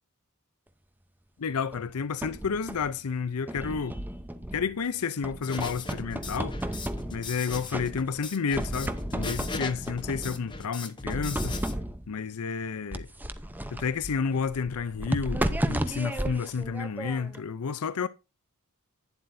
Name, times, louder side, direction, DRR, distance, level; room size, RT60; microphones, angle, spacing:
voice 1, 1.4-4.0 4.5-6.8 7.1-11.6 12.1-13.1 13.7-18.1, left 5 dB, 85° left, 0.6 m, -31 dB
sound 1, 1.7-3.0 3.5-4.8 5.2-7.4 7.7-8.3 8.5-10.5 11.1-12.1 12.9-17.4, right 1 dB, 10° right, 0.7 m, -33 dB
sound 2, 5.4-11.8, left 4 dB, 20° left, 1.0 m, -39 dB
11.5 x 9.7 x 2.7 m
head